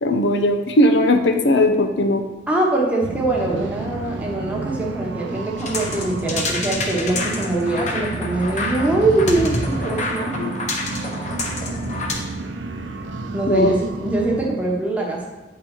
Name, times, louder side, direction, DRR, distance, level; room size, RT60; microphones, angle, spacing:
voice 1, 0.0-2.2 10.4-10.5 13.5-13.7, left 1 dB, 75° left, 5 dB, 0.6 m, -18 dB
voice 2, 2.5-10.3 13.3-15.3, right 2 dB, 10° right, -2 dB, 1.0 m, -23 dB
sound 1, 3.0-14.5, right 3 dB, 85° right, 0.6 m, -31 dB
sound 2, 5.6-12.1, left 2 dB, 40° left, 1.0 m, -28 dB
8.4 x 3.9 x 4.5 m, 1.2 s
head